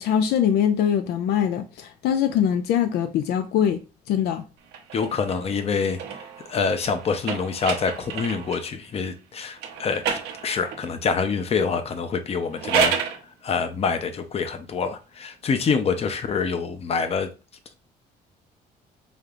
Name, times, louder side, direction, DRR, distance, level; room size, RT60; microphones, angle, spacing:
voice 1, 0.0-3.8 4.1-4.4, left 9 dB, 75° left, 0.4 m, -22 dB
sound 1, 4.7-8.7 9.6-10.9 12.4-13.2, right 7 dB, 80° right, 0.9 m, -30 dB
voice 2, 4.9-6.2 6.5-13.0 13.2-17.3, left 5 dB, 35° left, 0.7 m, -26 dB
5.1 x 2.8 x 2.5 m
cardioid pair, 110°, 17 cm